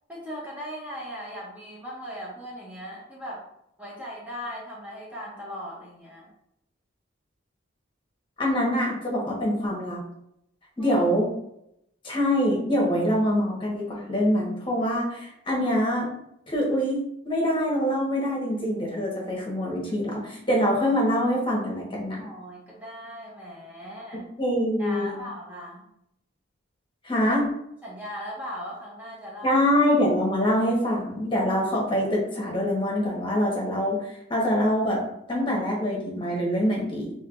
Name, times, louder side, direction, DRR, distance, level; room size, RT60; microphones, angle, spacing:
voice 1, 0.1-3.5 3.8-6.3 10.8-11.0 22.2-24.3 24.8-25.8 27.8-29.6, equal, 10° right, -5 dB, 0.7 m, -38 dB
voice 2, 8.4-10.0 10.8-11.3 12.0-16.1 16.5-22.2 24.4-25.2 27.0-27.4 29.4-35.0 35.3-37.1, equal, 25° left, -3 dB, 1.2 m, -24 dB
5.4 x 2.8 x 2.5 m, 0.78 s
head